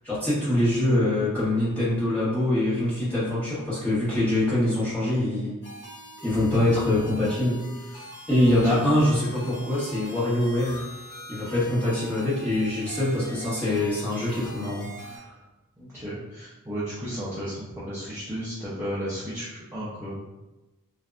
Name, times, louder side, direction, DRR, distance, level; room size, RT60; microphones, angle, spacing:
voice 1, 0.0-5.5 6.2-7.5 8.3-10.8 11.3-15.2, left 1 dB, 5° left, -12 dB, 1.2 m, -24 dB
sound 1, 5.6-15.2, equal, 45° left, 0.9 m, -43 dB
voice 2, 8.5-8.8 15.8-20.2, equal, 10° right, -11 dB, 0.5 m, -34 dB
2.6 x 2.2 x 2.3 m, 1.0 s
head